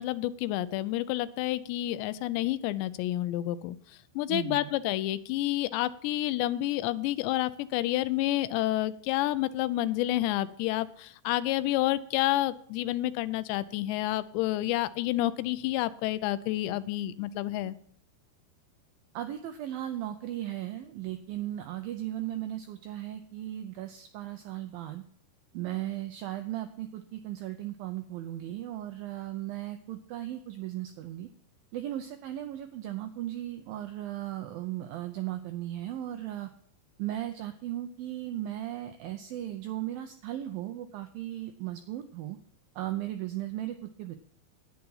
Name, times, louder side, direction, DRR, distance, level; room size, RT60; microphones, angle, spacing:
voice 1, 0.0-3.8 4.2-17.8, left 15 dB, 85° left, 15 dB, 2.8 m, -29 dB
voice 2, 4.3-4.7 19.1-25.0 25.5-31.3 31.7-36.5 37.0-42.4 42.8-44.2, right 13 dB, 85° right, 8 dB, 2.0 m, -36 dB
10.5 x 9.6 x 5.5 m, 0.63 s
omnidirectional pair, 5.0 m